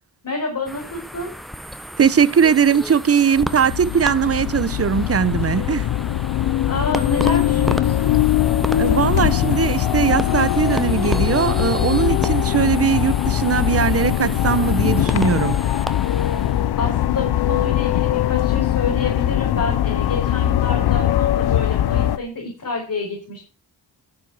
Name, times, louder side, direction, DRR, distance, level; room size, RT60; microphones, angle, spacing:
voice 1, 0.2-1.3 6.7-8.1 16.8-23.4, left 4 dB, 55° left, 5.2 m, -28 dB
sound 1, 0.7-16.7, equal, ahead, 1.0 m, -33 dB
voice 2, 2.0-5.9 8.8-15.6, right 7 dB, 35° right, 0.7 m, -19 dB
sound 2, 3.4-22.2, left 12 dB, 75° left, 0.7 m, -21 dB
12.0 x 6.5 x 6.3 m
cardioid pair, 65°, 39 cm